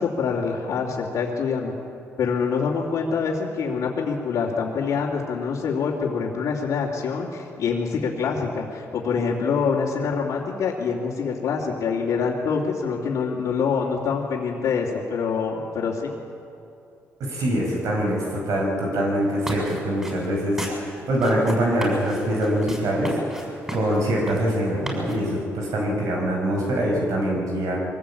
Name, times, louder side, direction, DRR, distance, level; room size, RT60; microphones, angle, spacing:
voice 1, 0.0-1.7 2.2-16.1, left 5 dB, 75° left, -5 dB, 3.0 m, -25 dB
voice 2, 17.2-20.6 21.1-23.2 23.7-27.8, equal, 75° right, -1 dB, 5.6 m, -24 dB
sound 1, 19.2-25.4, equal, 10° right, 6.7 m, -33 dB
23.5 x 18.0 x 8.6 m, 2.6 s
cardioid pair, 110°, 6 cm